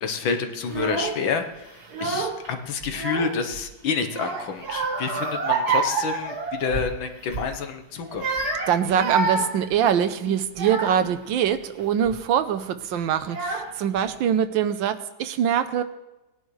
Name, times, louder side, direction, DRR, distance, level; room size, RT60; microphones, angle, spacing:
voice 1, 0.0-8.3, left 5 dB, 80° left, 6 dB, 1.9 m, -28 dB
Child speech kid speaking / Crying sobbing, 0.6-1.2 1.8-2.5 2.8-3.6 4.1-6.9 7.3-7.5 8.0-11.2 11.8-12.2 12.9-13.0 13.3-14.0, right 4 dB, 55° right, 2.0 m, -28 dB
voice 2, 8.7-15.8, right 9 dB, 80° right, 10 dB, 1.4 m, -23 dB
19.5 x 10.0 x 3.2 m, 1.0 s
omnidirectional pair, 2.1 m